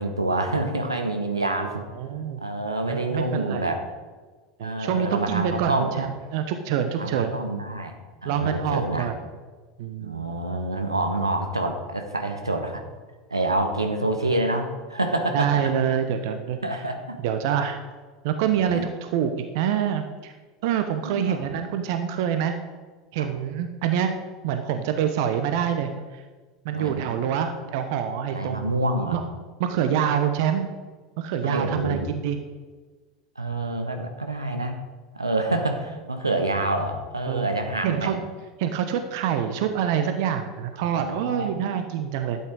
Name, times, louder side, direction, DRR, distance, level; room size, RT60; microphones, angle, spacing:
voice 1, 0.0-1.8 2.4-3.8 4.6-6.1 7.0-9.1 10.0-12.8 13.3-15.5 16.6-17.2 18.7-18.8 21.0-21.5 23.2-23.3 26.7-27.1 28.3-29.2 31.4-32.1 33.4-34.8 35.1-38.1 40.8-41.8, right 2 dB, 90° right, 5 dB, 1.2 m, -27 dB
voice 2, 1.6-2.4 2.8-3.7 4.6-7.4 8.2-9.1 9.8-10.2 15.3-16.6 17.2-17.8 18.2-20.3 20.6-22.5 23.1-24.1 24.4-26.2 26.6-28.8 29.1-29.2 29.6-30.7 31.2-32.4 37.3-38.2 38.6-42.4, right 8 dB, 55° right, 7 dB, 0.9 m, -26 dB
12.0 x 8.5 x 4.8 m, 1.4 s
figure-of-eight pair, 80°, 2 cm